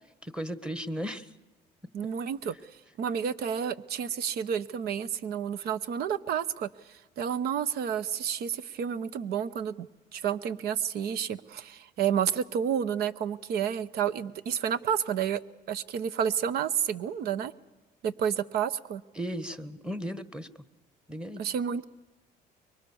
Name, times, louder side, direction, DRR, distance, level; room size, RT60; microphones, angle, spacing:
voice 1, 0.2-1.3 19.1-20.5 21.1-21.4, equal, 5° right, 14 dB, 1.2 m, -35 dB
voice 2, 1.9-2.5 3.0-6.7 7.2-9.9 10.1-15.4 15.7-17.5 18.0-19.0 21.4-21.8, right 8 dB, 70° right, 16 dB, 0.9 m, -30 dB
24.0 x 23.0 x 7.1 m, 1.1 s
cardioid pair, 110°, 17 cm